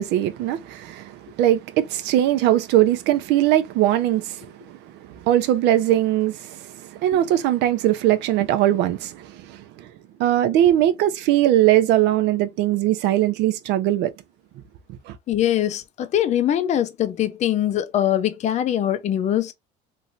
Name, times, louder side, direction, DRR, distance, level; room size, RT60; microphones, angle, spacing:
voice 1, 0.0-9.9 10.2-14.1 15.1-15.2, right 13 dB, 65° right, 0.5 m, -21 dB
voice 2, 15.3-19.5, left 11 dB, 35° left, 0.5 m, -22 dB
3.1 x 2.6 x 2.4 m
cardioid pair, 130°, 19 cm